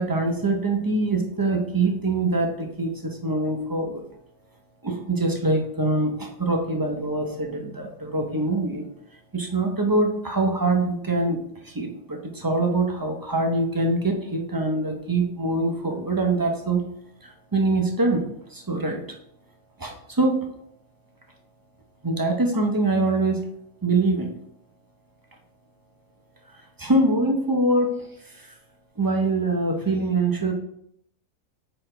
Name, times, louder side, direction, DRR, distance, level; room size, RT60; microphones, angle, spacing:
voice 1, 0.0-4.0 4.8-8.8 9.3-16.8 17.2-18.2 18.5-19.0 19.8-20.4 22.0-23.4 23.8-24.3 26.8-27.9 28.2-28.5 29.0-30.5, right 2 dB, 20° right, 2 dB, 0.6 m, -24 dB
8.4 x 4.3 x 3.3 m, 0.73 s
omnidirectional pair, 1.5 m